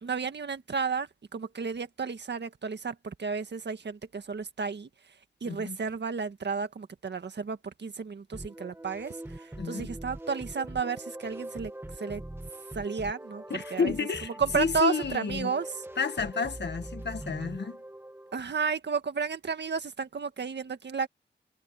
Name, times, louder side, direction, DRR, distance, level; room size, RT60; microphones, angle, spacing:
voice 1, 0.0-4.9 5.4-11.7 12.0-12.2 12.7-13.4 13.7-13.9 14.2-15.7 18.3-21.1, right 5 dB, 70° right, 1.7 m, -32 dB
voice 2, 5.4-5.8 9.6-9.9 13.5-14.3 14.6-15.5 16.0-17.8, left 5 dB, 70° left, 1.7 m, -31 dB
sound 1, 8.3-18.4, right 1 dB, 10° right, 1.7 m, -42 dB
wide cardioid pair, 100°, 19 cm